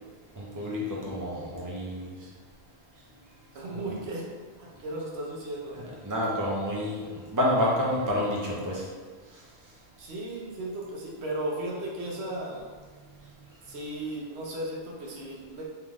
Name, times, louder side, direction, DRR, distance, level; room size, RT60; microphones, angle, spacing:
voice 1, 0.4-2.1 6.0-8.8, left 1 dB, 20° right, -4 dB, 0.8 m, -28 dB
voice 2, 3.5-4.3 4.6-5.8 10.0-12.7 13.7-15.7, right 1 dB, 90° right, -3 dB, 1.1 m, -35 dB
3.8 x 3.3 x 3.5 m, 1.5 s
omnidirectional pair, 1.0 m